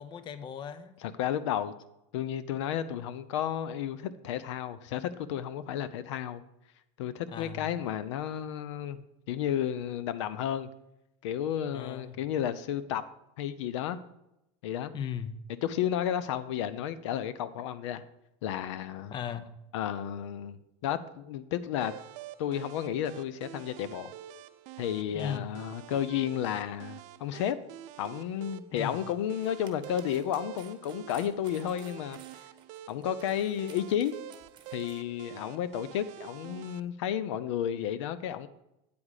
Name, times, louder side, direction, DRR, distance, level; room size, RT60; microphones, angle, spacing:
voice 1, 0.0-1.0 7.3-7.6 11.7-12.2 14.9-15.5 19.1-19.6 25.1-25.5 28.7-29.0, left 8 dB, 30° left, 0.6 m, -37 dB
voice 2, 1.0-1.7 2.1-6.4 7.0-10.7 11.2-13.0 13.4-14.0 14.6-14.9 15.6-18.0 18.4-19.1 19.7-22.0 22.4-24.1 24.8-27.6 28.0-32.2 32.9-34.1 34.7-38.5, left 10 dB, 85° left, 0.6 m, -32 dB
sound 1, 21.8-36.8, right 11 dB, 55° right, 0.5 m, -47 dB
sound 2, 29.2-35.0, right 8 dB, 30° right, 1.1 m, -55 dB
8.6 x 4.9 x 6.4 m
supercardioid pair, 130°, 15 cm